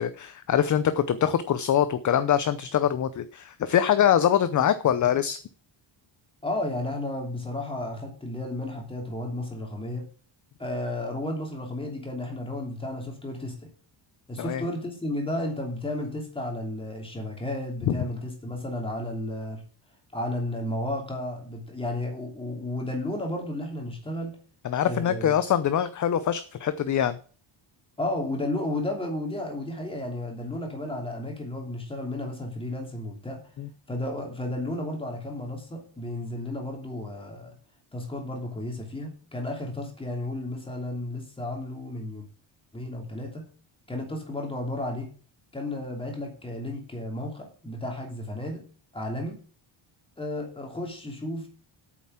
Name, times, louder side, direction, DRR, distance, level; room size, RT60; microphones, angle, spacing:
voice 1, 0.0-5.4 14.4-14.6 17.9-18.0 24.6-27.2 33.6-33.7, left 9 dB, 40° left, 13 dB, 0.6 m, -24 dB
voice 2, 6.4-10.1 10.6-13.7 14.3-19.6 20.1-24.4 24.8-25.4 28.0-33.5 33.9-37.5 37.9-42.3 42.7-43.5 43.9-45.1 45.5-48.6 48.9-49.4 50.2-51.5, left 1 dB, 10° left, 2 dB, 3.0 m, -33 dB
8.7 x 7.2 x 7.5 m, 0.41 s
cardioid pair, 170°, 49 cm